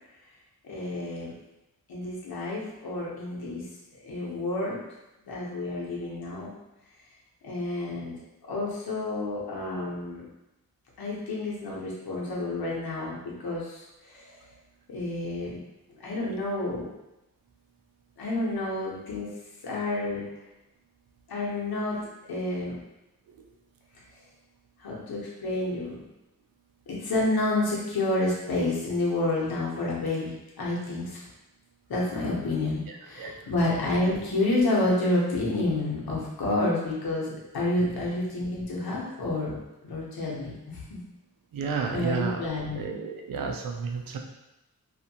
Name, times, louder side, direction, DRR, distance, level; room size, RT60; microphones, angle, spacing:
voice 1, 0.6-1.3 1.9-3.6 3.9-4.8 5.2-6.5 7.4-8.1 8.5-10.2 11.0-14.4 14.9-15.6 16.0-16.9 18.2-19.3 19.6-20.3 21.3-22.8 24.8-26.0 26.9-31.2 31.9-39.6 39.8-41.0 41.9-42.8, left 2 dB, 80° left, -4 dB, 0.9 m, -29 dB
voice 2, 41.5-42.4 42.7-44.2, right 5 dB, 70° right, 3 dB, 0.5 m, -31 dB
2.6 x 2.4 x 2.7 m, 0.93 s
wide cardioid pair, 95°, 36 cm